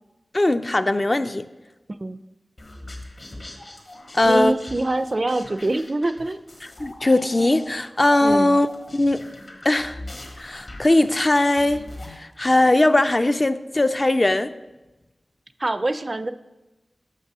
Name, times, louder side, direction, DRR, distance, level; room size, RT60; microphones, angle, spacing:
voice 1, 0.3-1.5 4.1-4.5 6.8-8.7 8.9-9.2 9.6-10.0 10.4-14.5, left 2 dB, 35° left, 10 dB, 0.3 m, -19 dB
sound 1, 2.6-12.2, left 1 dB, 60° left, 1.4 m, -40 dB
voice 2, 4.2-6.4 8.2-8.6 15.6-16.3, right 2 dB, 40° right, 12 dB, 0.3 m, -24 dB
6.6 x 5.4 x 6.0 m, 1.1 s
wide cardioid pair, 75°, 0 cm